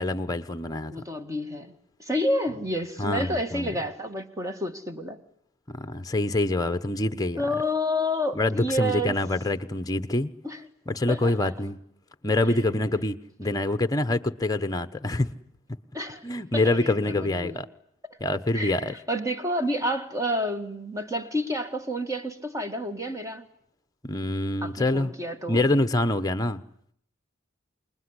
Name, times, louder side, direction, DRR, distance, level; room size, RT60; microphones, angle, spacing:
voice 1, 0.0-0.9 3.0-3.7 5.7-7.4 8.4-10.3 10.9-11.8 12.2-15.3 16.2-17.7 18.2-18.9 24.0-25.1 25.5-26.6, left 2 dB, 20° left, 1.1 m, -26 dB
voice 2, 0.9-1.7 2.0-5.2 7.4-9.2 10.4-10.6 11.1-11.5 12.4-12.6 15.9-16.2 16.5-17.6 18.5-23.5 24.6-25.7, equal, 15° right, 2.0 m, -29 dB
27.0 x 21.0 x 9.9 m
head